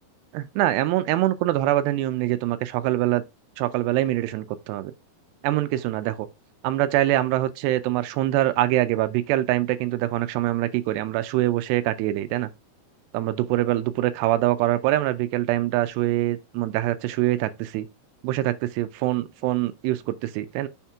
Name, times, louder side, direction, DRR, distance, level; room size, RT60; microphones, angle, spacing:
voice 1, 0.3-3.2 3.6-4.9 5.4-6.3 6.6-12.5 13.1-17.9 18.2-20.7, right 15 dB, 85° right, 2.7 m, -24 dB
6.5 x 4.4 x 3.5 m
omnidirectional pair, 4.8 m